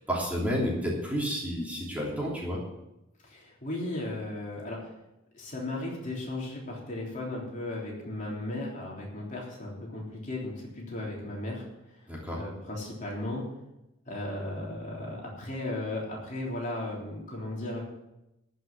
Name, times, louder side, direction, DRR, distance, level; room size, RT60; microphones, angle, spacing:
voice 1, 0.0-2.6 12.1-12.4, equal, 5° right, -4 dB, 3.1 m, -30 dB
voice 2, 3.2-4.9 5.3-11.6 12.3-13.4 14.1-17.8, left 1 dB, 40° left, -3 dB, 3.5 m, -36 dB
14.0 x 6.0 x 8.7 m, 0.91 s
head